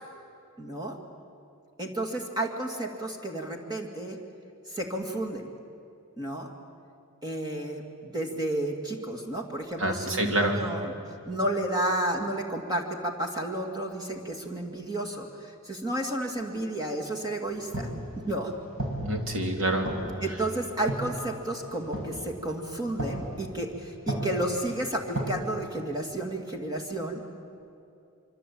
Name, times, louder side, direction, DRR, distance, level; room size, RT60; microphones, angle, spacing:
voice 1, 0.6-1.0 1.8-4.2 4.7-5.4 6.2-6.5 7.2-10.9 11.2-17.9 18.3-18.5 20.2-27.2, right 1 dB, 15° right, 2 dB, 2.3 m, -32 dB
voice 2, 9.8-10.6 19.0-19.9, right 1 dB, 60° right, 3 dB, 3.3 m, -27 dB
sound 1, 17.5-25.3, right 1 dB, 85° right, 6.4 m, -37 dB
26.0 x 25.0 x 8.7 m, 2.6 s
head